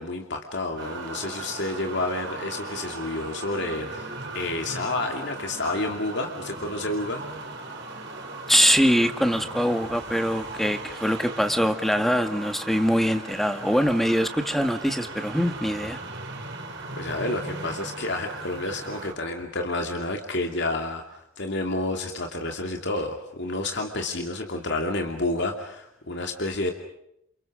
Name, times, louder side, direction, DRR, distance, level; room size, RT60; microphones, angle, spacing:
voice 1, 0.0-7.2 16.9-26.7, left 2 dB, 60° left, 4 dB, 2.6 m, -30 dB
sound 1, 0.8-19.1, right 2 dB, 60° right, 5.8 m, -38 dB
voice 2, 8.5-16.0, equal, ahead, 7 dB, 1.8 m, -23 dB
30.0 x 28.0 x 5.0 m, 0.78 s
head